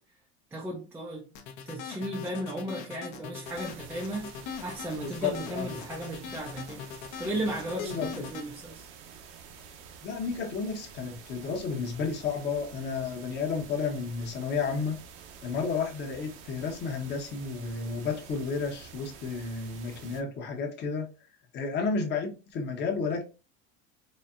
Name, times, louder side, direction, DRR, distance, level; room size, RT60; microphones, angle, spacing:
voice 1, 0.5-1.3 1.7-4.3 4.6-6.8 7.2-8.9, right 1 dB, 5° right, 0.5 m, -35 dB
sound 1, 1.3-8.5, left 7 dB, 60° left, 0.9 m, -41 dB
sound 2, 3.4-20.2, right 6 dB, 60° right, 0.8 m, -49 dB
voice 2, 5.0-5.8 7.8-8.3 10.0-15.0 15.4-21.1 21.5-23.2, left 5 dB, 30° left, 1.0 m, -32 dB
4.2 x 3.1 x 2.5 m
cardioid pair, 160°, 34 cm